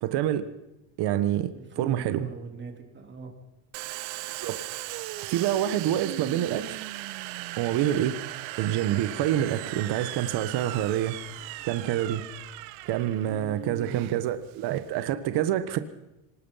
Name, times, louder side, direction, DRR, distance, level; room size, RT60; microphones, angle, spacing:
voice 1, 0.0-0.5 1.0-1.5 1.8-2.3 4.3-4.6 5.3-6.8 7.6-8.2 8.6-11.2 11.6-12.2 12.8-15.8, right 11 dB, 60° right, 11 dB, 1.5 m, -27 dB
voice 2, 1.5-3.3 13.2-14.1, right 3 dB, 25° right, 3 dB, 3.6 m, -41 dB
Domestic sounds home sounds, 3.7-15.1, right 17 dB, 85° right, 1.1 m, -38 dB
25.0 x 20.0 x 5.7 m, 0.96 s
cardioid pair, 145°, 45 cm